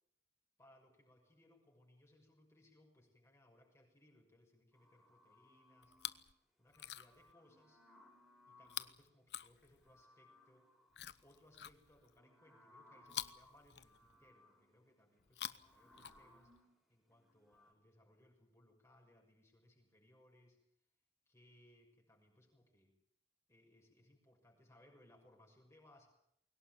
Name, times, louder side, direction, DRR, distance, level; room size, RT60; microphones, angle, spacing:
voice 1, 0.6-5.9 6.6-7.8 8.5-10.7 11.2-16.5 16.9-20.6 21.3-23.0 23.5-26.1, left 1 dB, 15° left, 1 dB, 6.2 m, -68 dB
sound 1, 4.7-6.3 6.6-9.1 9.6-17.7, left 1 dB, ahead, 6.4 m, -67 dB
Chewing mastication, 5.8-6.3 6.7-7.3 8.6-10.0 10.9-12.2 13.0-14.3 15.2-16.6 17.5-17.6, left 11 dB, 75° left, 0.9 m, -48 dB
22.5 x 18.0 x 9.3 m, 0.76 s
head